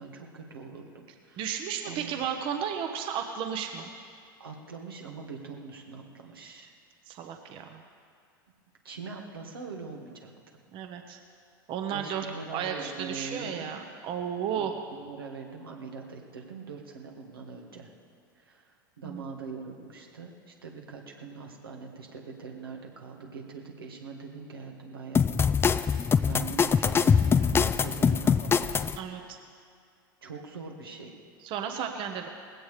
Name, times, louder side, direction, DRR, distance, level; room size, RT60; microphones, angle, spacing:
voice 1, 0.0-1.5 1.8-2.2 4.4-6.7 8.8-10.3 11.9-13.8 14.5-17.9 18.3-25.5 25.9-28.6 30.2-31.2, right 5 dB, 85° right, 0 dB, 1.8 m, -42 dB
voice 2, 1.4-3.9 7.1-7.8 10.7-11.2 11.7-12.3 12.5-14.7 19.0-19.2 29.0-29.4 31.4-32.3, right 8 dB, 45° right, 5 dB, 1.1 m, -33 dB
sound 1, 25.2-29.0, left 6 dB, 20° left, 0.5 m, -23 dB
19.5 x 16.5 x 3.3 m, 2.2 s
hypercardioid pair, 90°, 12 cm